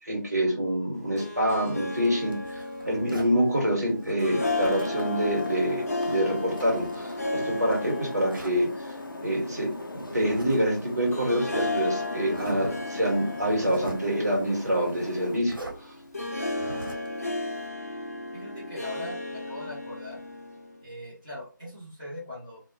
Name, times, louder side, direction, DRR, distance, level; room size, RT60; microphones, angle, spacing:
voice 1, 0.0-8.9 9.2-15.5 15.8-15.9, equal, 50° right, -1 dB, 1.3 m, -26 dB
Harp, 0.9-20.8, left 2 dB, 45° left, 0.7 m, -35 dB
Zipper (clothing), 1.7-3.4 4.0-5.1 5.4-7.7 8.3-8.6 10.0-10.6 10.9-11.0 11.7-11.8 12.3-12.8 13.3-14.1 15.4-15.8 16.5-17.1, right 1 dB, 85° right, 0.9 m, -42 dB
sound 1, 4.5-15.4, left 2 dB, 85° left, 0.6 m, -40 dB
voice 2, 18.3-20.2 20.8-22.6, left 1 dB, 20° right, -11 dB, 0.8 m, -41 dB
2.6 x 2.1 x 2.8 m, 0.37 s
figure-of-eight pair, 175°, 11 cm